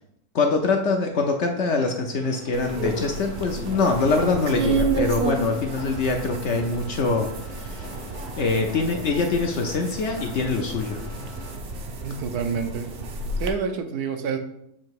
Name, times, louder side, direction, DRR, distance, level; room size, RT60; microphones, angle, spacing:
voice 1, 0.3-7.9 8.4-11.0, left 3 dB, 60° left, 3 dB, 0.8 m, -24 dB
sound 1, 2.2-11.6, left 3 dB, 80° left, 1.4 m, -44 dB
sound 2, 2.5-13.5, right 3 dB, 55° right, 0.8 m, -31 dB
voice 2, 12.0-12.9 13.4-14.4, right 5 dB, 80° right, 6 dB, 1.3 m, -28 dB
7.3 x 2.8 x 4.6 m, 0.74 s
omnidirectional pair, 1.6 m